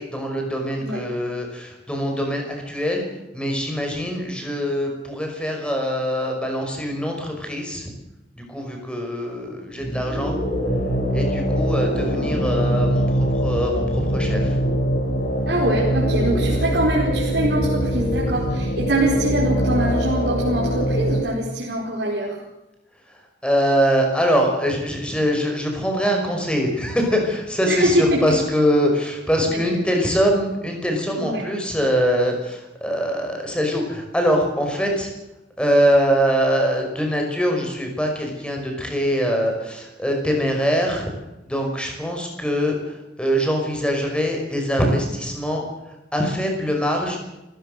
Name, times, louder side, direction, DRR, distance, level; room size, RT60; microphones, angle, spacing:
voice 1, 0.0-3.0 3.3-7.9 8.4-10.4 11.1-14.6 23.1-35.1 35.6-41.1 41.4-47.2, equal, 5° left, 2 dB, 5.5 m, -23 dB
sound 1, 9.7-21.2, equal, 50° left, 7.6 m, -22 dB
voice 2, 15.4-22.4 27.7-28.3 29.5-29.7 31.2-31.5, right 1 dB, 65° right, -4 dB, 4.6 m, -23 dB
28.0 x 15.5 x 6.7 m, 0.98 s
head